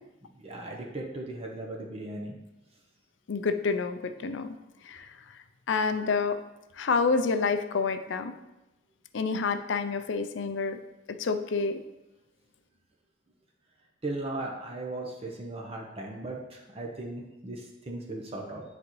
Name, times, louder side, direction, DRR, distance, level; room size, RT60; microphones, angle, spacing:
voice 1, 0.4-2.4 14.0-18.6, right 2 dB, 30° right, -1 dB, 0.8 m, -37 dB
voice 2, 3.3-4.5 4.9-5.1 5.7-6.4 6.8-8.3 9.1-10.8 11.1-11.8, left 4 dB, 65° left, 9 dB, 0.5 m, -28 dB
9.6 x 4.1 x 3.1 m, 0.99 s
head